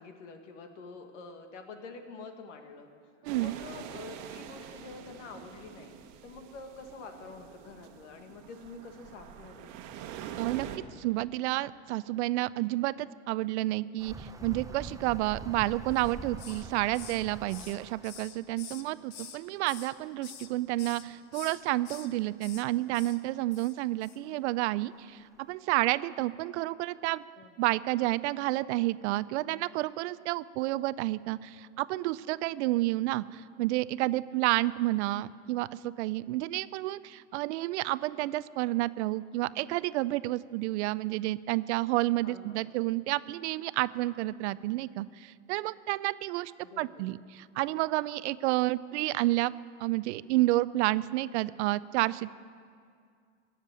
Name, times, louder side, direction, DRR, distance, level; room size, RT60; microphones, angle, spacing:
voice 1, 0.0-2.9 3.3-6.0 6.2-9.7 27.4-27.6 42.2-42.6 46.6-47.1, left 4 dB, 75° left, 6 dB, 1.9 m, -47 dB
voice 2, 3.2-3.5 10.4-10.7 11.0-27.2 27.6-46.5 46.8-49.5 49.8-52.3, right 18 dB, 70° right, 18 dB, 0.5 m, -30 dB
sound 1, 3.3-10.8, right 9 dB, 50° right, 1.2 m, -45 dB
sound 2, 14.0-18.4 20.3-20.4 20.6-20.7 21.6-21.7 24.1-24.2 24.8-24.9 25.4-25.5, right 3 dB, 10° right, 0.8 m, -44 dB
Hiss, 15.9-16.7 16.9-19.4 19.7-20.5 20.8-21.0 21.3-22.1 22.4-22.7 22.9-23.2 23.5-23.7 24.0-24.2, left 8 dB, 45° left, 1.2 m, -47 dB
17.5 x 7.4 x 9.6 m, 2.2 s
supercardioid pair, 110°, 36 cm